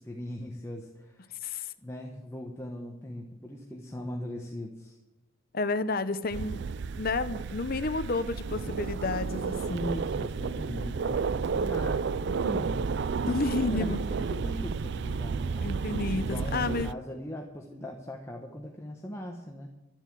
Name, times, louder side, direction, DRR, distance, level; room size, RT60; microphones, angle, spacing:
voice 1, 0.0-1.3 1.8-5.0 9.5-13.3 13.7-15.7 16.1-19.7, left 1 dB, 15° left, 0 dB, 1.1 m, -39 dB
voice 2, 1.4-1.7 5.5-6.7 7.0-9.9 13.3-14.0 15.6-16.9, left 3 dB, 45° left, 13 dB, 0.7 m, -31 dB
sound 1, 6.3-16.9, right 5 dB, 55° right, 0.4 m, -32 dB
12.5 x 7.8 x 9.2 m, 0.99 s
head